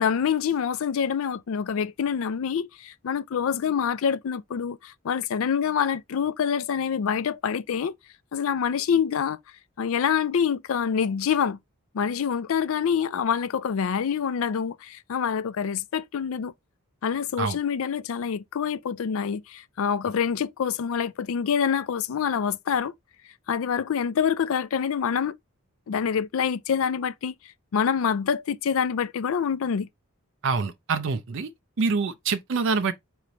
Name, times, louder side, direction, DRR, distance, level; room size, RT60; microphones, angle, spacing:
voice 1, 0.0-7.9 8.3-9.4 9.8-11.6 11.9-16.5 17.0-22.9 23.5-25.4 25.9-27.3 27.7-29.9, left 7 dB, 70° left, 0.4 m, -26 dB
voice 2, 30.4-31.5 31.8-32.9, right 4 dB, 55° right, 0.5 m, -25 dB
3.9 x 3.2 x 3.0 m
head